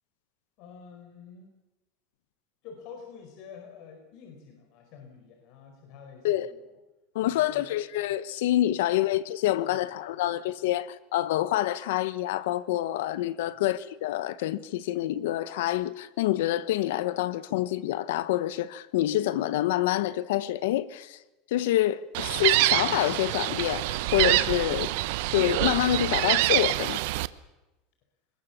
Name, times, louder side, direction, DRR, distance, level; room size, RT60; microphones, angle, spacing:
voice 1, 0.6-1.5 2.6-6.8 7.2-7.7 9.7-10.2 10.6-10.7 13.4-13.6, left 6 dB, 60° left, 4.8 m, -48 dB
voice 2, 7.1-21.2 21.5-24.9 25.3-27.0, left 14 dB, 85° left, 1.1 m, -27 dB
Gull seagull, 22.1-27.3, right 19 dB, 75° right, 0.9 m, -26 dB
29.0 x 20.0 x 7.2 m
supercardioid pair, 125°, 0 cm